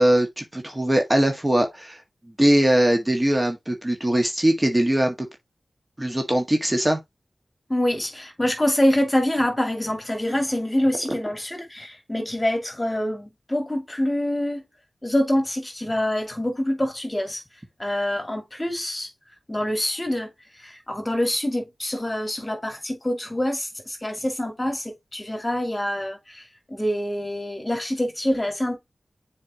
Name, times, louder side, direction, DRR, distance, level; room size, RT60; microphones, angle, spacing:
voice 1, 0.0-5.3 6.0-7.0 11.1-11.2, right 1 dB, 20° right, 1.9 m, -21 dB
voice 2, 7.7-14.6 15.0-17.4 17.8-19.1 19.5-20.3 20.6-28.8, left 1 dB, 20° left, 2.7 m, -25 dB
7.3 x 4.5 x 3.0 m
cardioid pair, 45°, 0 cm